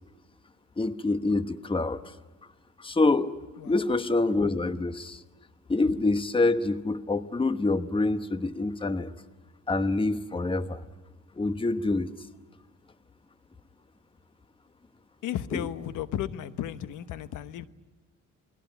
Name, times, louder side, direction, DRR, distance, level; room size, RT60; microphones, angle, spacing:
voice 1, 0.8-2.0 2.8-3.4 3.6-5.2 5.7-9.1 9.7-10.8 11.4-12.1 15.5-15.6, left 2 dB, 15° left, 11 dB, 1.1 m, -26 dB
voice 2, 15.2-17.7, left 11 dB, 80° left, 13 dB, 1.1 m, -34 dB
28.0 x 20.0 x 9.2 m, 1.2 s
cardioid pair, 90°, 30 cm